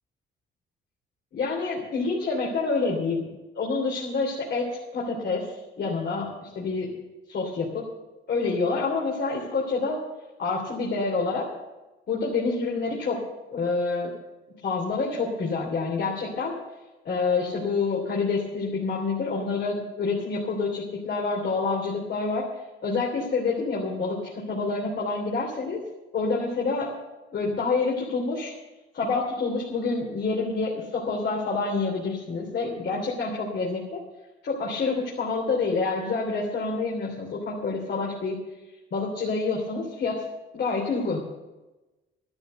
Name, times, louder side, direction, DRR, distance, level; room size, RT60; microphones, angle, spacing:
voice 1, 1.3-6.9 7.3-7.8 8.3-10.0 10.4-11.5 12.1-13.2 13.5-14.1 14.6-16.5 17.0-22.5 22.8-25.8 26.1-26.9 27.3-28.5 28.9-34.0 34.4-38.3 38.9-40.3 40.5-41.2, left 4 dB, 60° left, -3 dB, 3.3 m, -27 dB
12.5 x 12.5 x 6.6 m, 1.1 s
cardioid pair, 90°, 20 cm